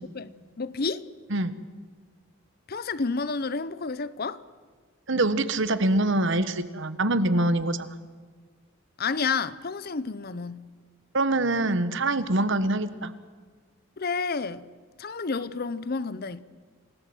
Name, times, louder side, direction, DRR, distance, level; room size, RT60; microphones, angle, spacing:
voice 1, 0.6-1.0 2.7-4.4 9.0-10.6 12.6-12.7 14.0-14.6 15.0-16.4, left 4 dB, 45° left, 0.7 m, -30 dB
voice 2, 5.1-8.0 11.1-13.1, right 2 dB, 55° right, 1.2 m, -24 dB
27.5 x 18.0 x 7.8 m
head